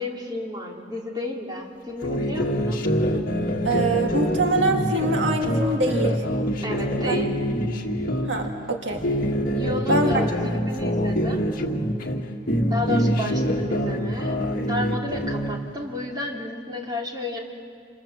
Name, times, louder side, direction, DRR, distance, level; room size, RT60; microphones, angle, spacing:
voice 1, 0.0-2.8 6.6-7.3 9.5-11.4 12.7-17.4, left 2 dB, 25° right, -1 dB, 3.2 m, -32 dB
sound 1, 2.0-8.5 8.9-12.2 12.5-15.6, equal, 50° left, 1.9 m, -25 dB
voice 2, 3.6-6.2 6.9-7.2 8.3-9.0 9.9-10.2, right 2 dB, 70° right, 2 dB, 2.1 m, -24 dB
28.0 x 27.5 x 7.4 m, 2.3 s
head